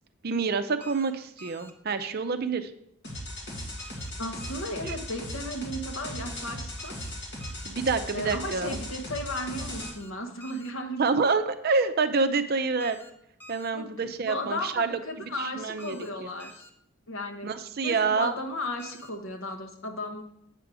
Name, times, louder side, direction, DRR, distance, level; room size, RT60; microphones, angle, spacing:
voice 1, 0.2-2.7 4.8-5.0 7.6-8.8 11.0-13.0 13.5-15.0 15.4-16.0 17.4-18.3, right 4 dB, 45° right, 10 dB, 0.5 m, -27 dB
sound 1, 0.8-1.1 1.4-1.7 3.8-4.1 4.4-4.7 6.8-7.1 7.4-7.7 9.8-10.1 10.4-10.7 12.8-13.1 13.4-13.7 15.8-16.1 16.4-16.7 18.8-19.1, equal, 10° left, 0.5 m, -49 dB
sound 2, 3.0-9.9, left 1 dB, 55° left, 1.8 m, -37 dB
voice 2, 4.2-7.0 8.1-11.1 13.7-13.9 14.3-16.7 17.1-17.5 17.8-20.2, left 1 dB, 70° left, 5 dB, 1.1 m, -35 dB
8.2 x 4.8 x 6.1 m, 0.75 s
head